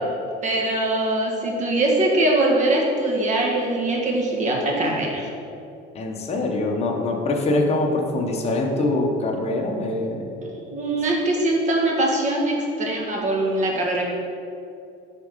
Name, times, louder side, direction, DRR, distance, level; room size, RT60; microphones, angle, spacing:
voice 1, 0.4-5.3 10.4-14.0, right 1 dB, 35° right, -1 dB, 1.3 m, -22 dB
voice 2, 5.9-10.3, left 2 dB, 30° left, 1 dB, 0.9 m, -24 dB
5.9 x 3.7 x 5.1 m, 2.5 s
cardioid pair, 110°, 20 cm